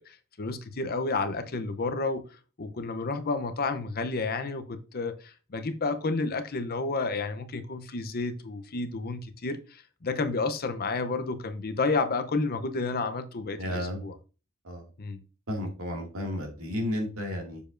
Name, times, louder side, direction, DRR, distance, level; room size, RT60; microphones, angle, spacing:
voice 1, 0.0-2.2 2.6-14.1 15.0-15.2, left 3 dB, 45° left, 0.7 m, -31 dB
voice 2, 13.6-14.0 14.6-14.8 15.5-17.6, left 1 dB, 80° right, 2.2 m, -32 dB
6.9 x 6.8 x 2.5 m
head